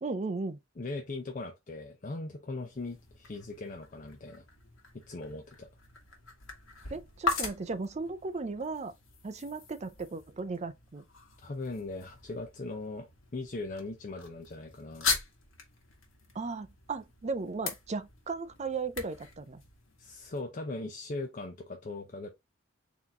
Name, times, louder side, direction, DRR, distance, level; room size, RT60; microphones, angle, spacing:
voice 1, 0.0-0.6 6.9-8.9 9.2-11.0 16.3-19.6, right 3 dB, 35° right, 0.5 m, -36 dB
voice 2, 0.8-4.4 5.1-5.7 11.4-15.1 20.0-22.3, left 2 dB, 40° left, 0.6 m, -39 dB
sound 1, 2.6-20.4, left 4 dB, 90° left, 1.5 m, -40 dB
4.0 x 3.0 x 3.5 m
head